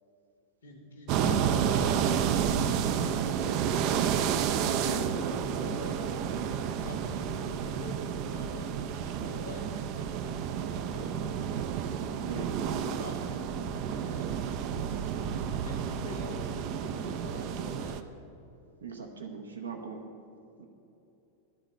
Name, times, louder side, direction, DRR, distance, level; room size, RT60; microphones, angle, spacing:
voice 1, 0.6-2.1 2.6-3.5 4.5-9.7 10.1-11.1 11.9-14.3 14.7-18.1, left 2 dB, 65° left, -2 dB, 1.1 m, -46 dB
sound 1, 1.1-18.0, right 8 dB, 40° right, 0.4 m, -30 dB
voice 2, 4.6-5.1 12.2-12.5 18.8-20.0 20.6-20.7, right 5 dB, 70° right, 3 dB, 0.8 m, -39 dB
11.5 x 4.0 x 7.8 m, 2.8 s
figure-of-eight pair, 90°, 0 cm